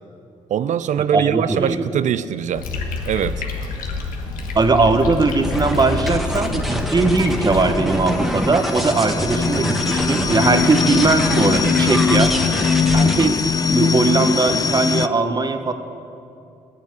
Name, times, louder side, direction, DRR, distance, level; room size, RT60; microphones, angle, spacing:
voice 1, 0.5-2.7 3.1-3.4, right 9 dB, 60° right, 14 dB, 0.4 m, -22 dB
voice 2, 1.1-1.8 4.5-12.3 12.9-13.4 13.7-15.7, right 3 dB, 30° right, 8 dB, 1.0 m, -19 dB
sound 1, 2.6-7.7, left 3 dB, 75° left, 1.3 m, -28 dB
sound 2, 5.4-13.3, equal, ahead, 1.3 m, -26 dB
sound 3, 6.7-15.1, left 5 dB, 25° left, 0.4 m, -21 dB
9.8 x 7.2 x 9.2 m, 2.7 s
supercardioid pair, 55°, 14 cm